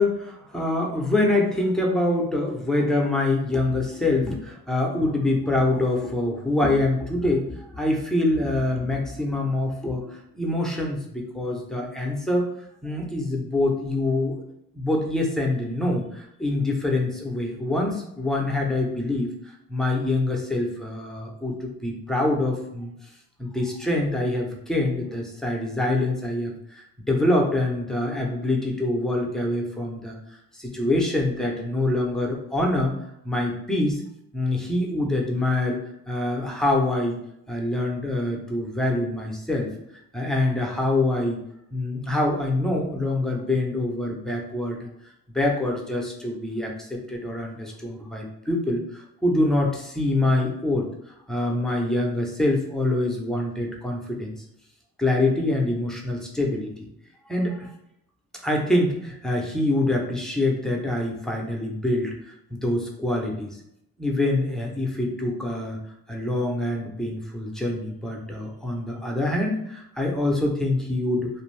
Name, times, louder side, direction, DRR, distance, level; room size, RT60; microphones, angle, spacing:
voice 1, 0.0-12.5 12.8-14.4 14.7-19.3 19.7-22.9 23.4-30.2 30.5-32.9 33.2-34.0 34.3-35.8 36.1-37.1 37.5-39.7 40.1-41.4 41.7-44.9 45.3-50.9 51.3-54.4 55.0-56.9 57.3-57.7 58.4-63.6 64.0-65.8 66.1-71.3, left 2 dB, ahead, 0 dB, 0.7 m, -25 dB
2.6 x 2.3 x 3.2 m, 0.77 s
cardioid pair, 90°, 38 cm